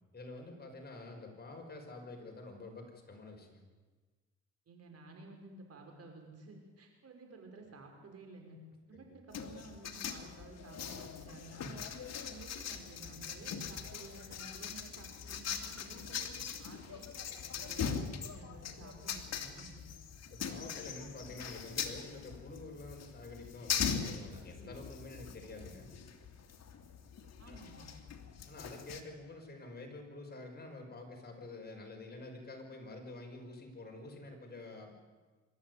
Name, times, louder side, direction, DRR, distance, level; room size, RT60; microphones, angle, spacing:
voice 1, 0.1-3.7 8.9-9.1 20.3-25.9 27.5-27.6 28.5-35.0, left 2 dB, 30° left, 2 dB, 5.6 m, -48 dB
voice 2, 4.7-8.6 8.9-11.9 12.2-17.1 17.5-19.9 27.4-27.9, right 3 dB, 55° right, 3 dB, 5.8 m, -53 dB
sound 1, 9.3-29.0, left 7 dB, 60° left, 2.4 m, -41 dB
25.5 x 13.5 x 9.6 m, 1.3 s
cardioid pair, 90°, 30 cm